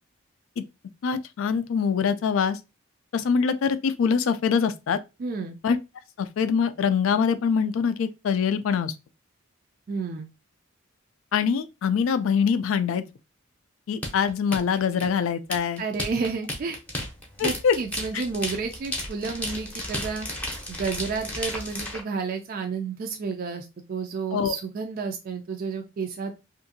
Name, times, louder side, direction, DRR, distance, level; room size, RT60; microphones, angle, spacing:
voice 1, 1.0-2.6 3.1-5.0 5.6-5.8 6.2-8.9 11.3-13.0 13.9-15.8 17.4-17.7 18.1-18.2 24.3-24.5, left 6 dB, 70° left, 0.3 m, -24 dB
voice 2, 5.2-5.6 9.9-10.3 15.8-16.8 17.4-20.3 20.7-26.3, right 4 dB, 45° right, 0.3 m, -31 dB
sound 1, 14.0-22.0, left 1 dB, 5° left, 0.6 m, -33 dB
2.7 x 2.5 x 2.6 m
head